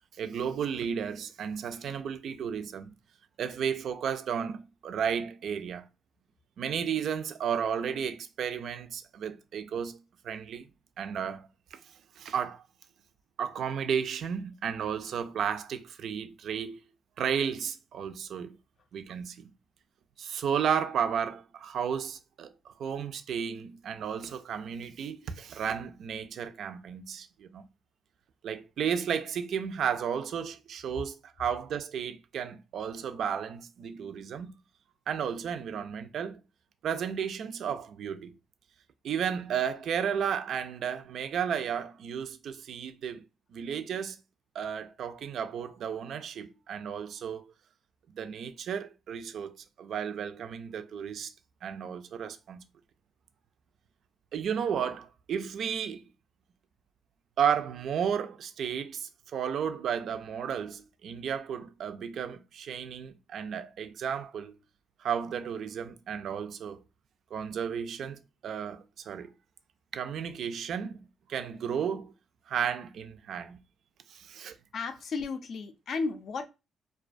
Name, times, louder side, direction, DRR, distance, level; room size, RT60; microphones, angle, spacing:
voice 1, 0.2-2.9 3.4-5.8 6.6-10.7 11.0-11.8 12.2-12.6 13.4-16.8 17.2-18.6 18.9-19.5 20.2-27.7 28.4-34.6 35.1-36.4 36.8-38.3 39.0-43.2 43.5-44.2 44.5-47.4 48.1-51.3 51.6-52.6 54.3-56.1 57.4-64.6 65.0-66.8 67.3-69.3 69.9-72.1 72.5-73.6 74.1-74.5, right 7 dB, 65° right, 0.3 m, -33 dB
voice 2, 74.7-76.5, left 4 dB, 55° left, 0.4 m, -34 dB
2.3 x 2.2 x 2.5 m
cardioid pair, 90°, 0 cm